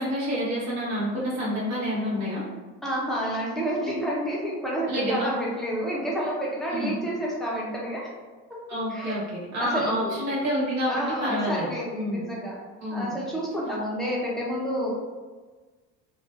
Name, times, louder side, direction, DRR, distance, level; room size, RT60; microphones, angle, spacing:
voice 1, 0.0-2.4 4.9-5.3 6.7-6.9 8.7-12.2 12.8-13.1, equal, 50° right, -7 dB, 1.2 m, -28 dB
voice 2, 2.8-8.0 8.9-9.2 9.6-10.2 10.9-12.6 12.9-14.9, equal, ahead, -6 dB, 0.7 m, -29 dB
2.4 x 2.3 x 2.5 m, 1.3 s
supercardioid pair, 100°, 34 cm